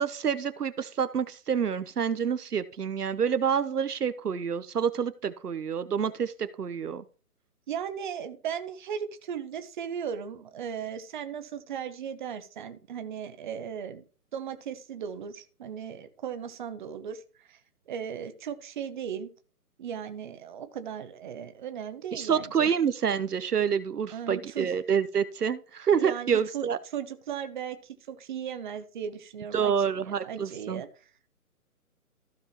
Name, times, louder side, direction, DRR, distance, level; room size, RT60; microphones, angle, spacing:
voice 1, 0.0-7.0 22.1-26.8 29.5-30.8, right 7 dB, 75° right, 13 dB, 0.9 m, -28 dB
voice 2, 7.7-14.0 14.3-17.6 17.9-19.3 19.8-22.7 24.1-24.7 25.9-29.8 30.0-30.9, right 8 dB, 30° right, 9 dB, 1.0 m, -37 dB
15.0 x 5.4 x 3.0 m, 0.38 s
figure-of-eight pair, 140°, 46 cm